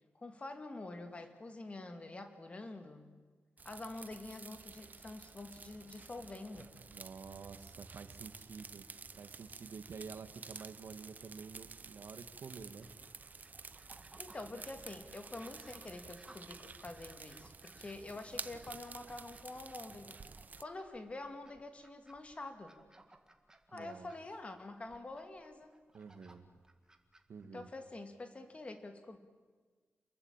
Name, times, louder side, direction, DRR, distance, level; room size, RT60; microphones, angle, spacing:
voice 1, 0.1-3.1 3.6-6.7 14.2-20.2 20.6-22.7 23.7-25.7 27.5-29.3, left 2 dB, 30° left, 6 dB, 2.4 m, -47 dB
sound 1, 3.6-20.6, right 4 dB, 40° right, 0.8 m, -51 dB
voice 2, 6.9-8.8 9.1-12.9 23.7-24.1 25.9-26.4 27.3-27.7, right 5 dB, 75° right, 9 dB, 1.8 m, -49 dB
sound 2, 12.8-28.0, right 2 dB, 15° right, 1.9 m, -63 dB
27.5 x 22.0 x 8.9 m, 1.4 s
wide cardioid pair, 160°, 4 cm